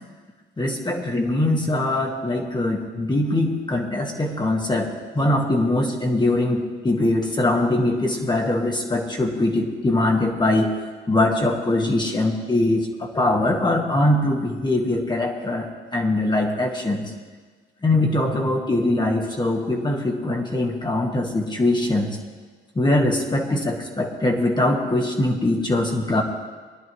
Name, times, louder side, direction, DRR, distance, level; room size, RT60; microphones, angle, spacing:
voice 1, 0.6-10.7 11.1-17.0 17.8-22.2 22.7-26.2, left 1 dB, 20° left, 1 dB, 1.7 m, -22 dB
21.5 x 10.5 x 3.1 m, 1.5 s
cardioid pair, 90°, 20 cm